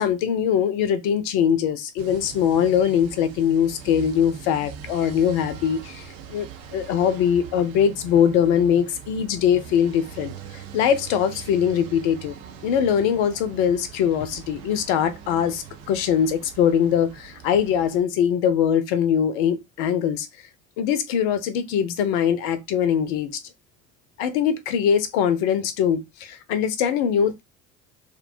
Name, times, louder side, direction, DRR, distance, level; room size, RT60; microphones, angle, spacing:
voice 1, 0.0-6.5 6.7-12.3 12.6-20.3 20.8-23.4 24.2-27.4, left 8 dB, 60° left, 0.6 m, -22 dB
sound 1, 2.0-18.0, right 7 dB, 65° right, 0.6 m, -42 dB
2.6 x 2.2 x 2.6 m
figure-of-eight pair, 60°, 39 cm